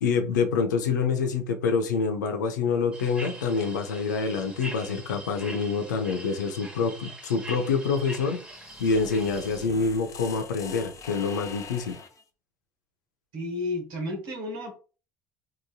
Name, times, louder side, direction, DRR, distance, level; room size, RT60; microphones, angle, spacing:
voice 1, 0.0-8.4 8.8-12.0, left 5 dB, 85° left, 5 dB, 0.5 m, -26 dB
sound 1, 2.9-9.7, right 1 dB, 10° right, 1.0 m, -43 dB
sound 2, 8.4-12.2, left 6 dB, 35° left, 0.5 m, -43 dB
voice 2, 13.3-14.8, left 2 dB, 65° right, 2 dB, 1.1 m, -32 dB
2.9 x 2.6 x 2.3 m, 0.35 s
hypercardioid pair, 65°, 10 cm